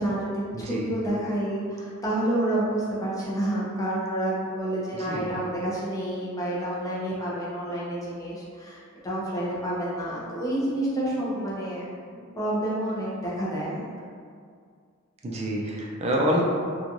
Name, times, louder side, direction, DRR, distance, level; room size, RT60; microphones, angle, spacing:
voice 1, 0.0-11.9 12.4-13.9, right 1 dB, 15° left, -7 dB, 0.6 m, -29 dB
voice 2, 0.5-0.9 5.0-5.2 15.2-16.4, equal, 30° right, -3 dB, 0.4 m, -27 dB
3.0 x 2.3 x 2.5 m, 2.2 s
head